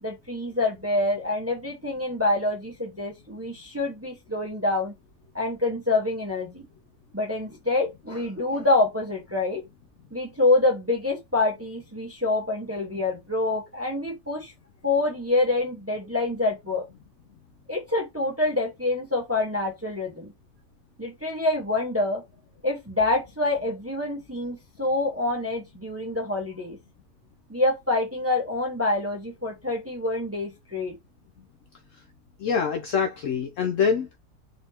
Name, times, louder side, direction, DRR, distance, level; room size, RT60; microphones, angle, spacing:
voice 1, 0.0-4.9 5.3-6.7 7.1-9.6 10.1-14.5 14.8-16.8 17.7-20.3 21.0-22.2 22.6-26.8 27.5-30.9, left 2 dB, 10° right, 0.8 m, -26 dB
voice 2, 32.4-34.2, left 6 dB, 70° left, 0.8 m, -25 dB
4.0 x 3.4 x 2.8 m
omnidirectional pair, 1.7 m